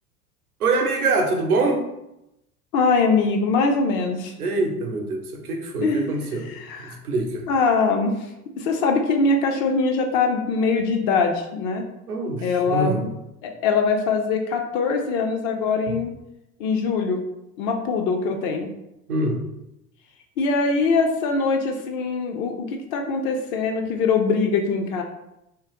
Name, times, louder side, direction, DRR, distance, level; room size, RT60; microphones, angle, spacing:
voice 1, 0.6-1.8 4.4-6.5 6.8-7.4 12.1-13.0 19.1-19.4, right 2 dB, 75° right, 3 dB, 0.8 m, -24 dB
voice 2, 2.7-4.3 5.8-7.0 7.5-8.3 8.6-11.8 12.4-13.1 13.4-16.1 16.6-17.2 17.6-18.7 20.4-25.0, left 4 dB, 35° left, 3 dB, 0.5 m, -22 dB
3.5 x 3.0 x 2.9 m, 0.88 s
figure-of-eight pair, 75°, 45 cm